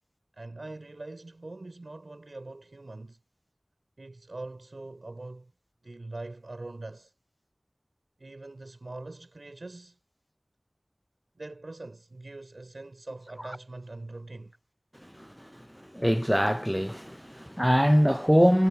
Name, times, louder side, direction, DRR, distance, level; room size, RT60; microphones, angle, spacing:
voice 1, 0.3-3.2 4.0-5.5 5.8-7.1 8.2-10.0 11.4-14.5, right 2 dB, 85° right, 3.5 m, -42 dB
voice 2, 15.9-18.7, equal, ahead, 0.4 m, -22 dB
wide cardioid pair, 45°, 0 cm